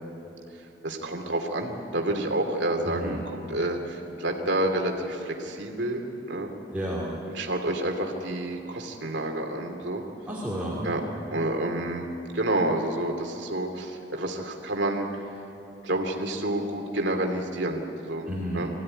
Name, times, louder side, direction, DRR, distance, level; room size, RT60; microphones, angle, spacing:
voice 1, 0.8-6.5 7.3-10.0 10.8-11.0 11.3-12.1 12.3-15.3 15.8-18.2 18.5-18.7, right 1 dB, 70° right, 3 dB, 2.5 m, -29 dB
voice 2, 2.8-3.2 6.7-7.1 10.3-11.1 18.3-18.6, equal, 10° right, -7 dB, 3.0 m, -31 dB
22.5 x 16.0 x 9.8 m, 2.9 s
head